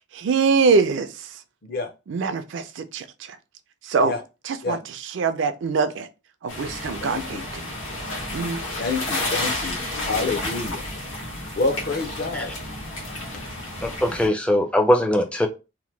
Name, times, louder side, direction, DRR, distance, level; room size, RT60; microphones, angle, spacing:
voice 1, 0.1-1.4 2.1-3.4 3.8-4.1 4.4-6.1 6.4-7.6 8.3-8.6, right 4 dB, 70° right, 0.4 m, -24 dB
sound 1, 6.5-14.3, left 1 dB, 80° left, 1.2 m, -31 dB
voice 2, 7.0-7.5 8.8-10.8 11.6-12.5, left 3 dB, 50° left, 0.6 m, -28 dB
voice 3, 13.8-15.5, left 1 dB, 5° left, 0.3 m, -21 dB
2.9 x 2.1 x 3.1 m
head